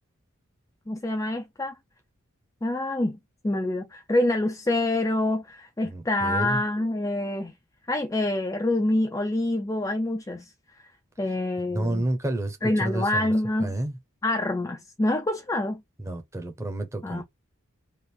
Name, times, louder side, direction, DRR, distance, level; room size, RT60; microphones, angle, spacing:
voice 1, 0.9-1.7 2.6-3.2 3.4-7.5 7.9-10.5 11.2-12.1 12.6-13.7 14.2-15.8 17.0-17.2, left 1 dB, 15° left, 0.4 m, -26 dB
voice 2, 5.9-6.6 11.7-13.3 13.6-14.0 16.0-17.2, right 1 dB, 15° right, 0.8 m, -30 dB
3.4 x 2.5 x 4.4 m
head